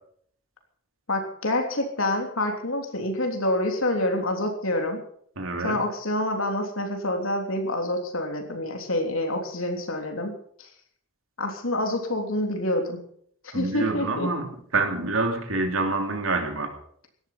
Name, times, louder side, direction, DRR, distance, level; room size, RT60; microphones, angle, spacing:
voice 1, 1.1-5.0 5.6-10.7 11.4-13.0 13.4-14.3, left 1 dB, 80° left, 4 dB, 3.4 m, -27 dB
voice 2, 5.4-5.8 13.5-16.7, right 3 dB, 80° right, 5 dB, 3.1 m, -27 dB
17.0 x 12.5 x 5.9 m, 0.63 s
head